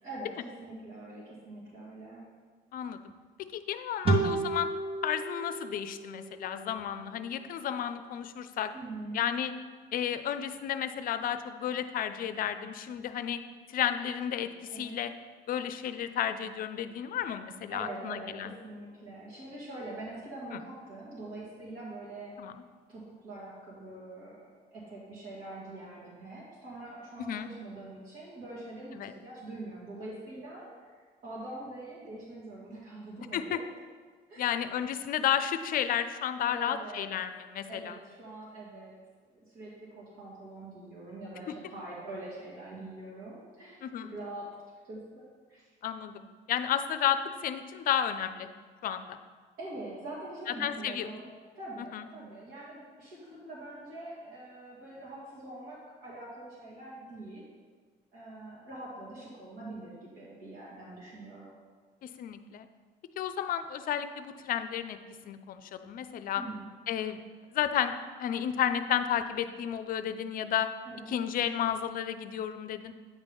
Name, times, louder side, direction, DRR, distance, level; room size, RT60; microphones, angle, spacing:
voice 1, 0.0-2.3 8.7-9.2 14.7-15.0 17.7-22.3 22.9-33.7 34.3-34.7 36.5-37.1 37.7-38.9 39.3-44.5 44.9-45.6 49.6-51.2 51.6-57.5 58.1-61.6 66.3-66.7 70.9-71.2, right 2 dB, 65° right, -7 dB, 2.1 m, -44 dB
voice 2, 3.5-4.7 5.0-8.7 9.1-9.5 9.9-13.4 13.7-15.1 15.5-18.5 22.4-22.5 27.3-27.5 29.0-29.1 33.3-33.6 34.4-38.0 43.8-44.1 45.8-48.5 48.8-49.2 50.6-51.1 51.9-52.0 62.0-62.7 63.2-65.0 65.2-66.4 66.9-67.2 67.5-67.9 68.2-70.7 71.1-72.9, left 9 dB, 55° left, 10 dB, 0.5 m, -32 dB
sound 1, 4.0-7.4, right 2 dB, 35° right, 1.2 m, -32 dB
9.0 x 5.2 x 3.6 m, 1.5 s
cardioid pair, 110°, 17 cm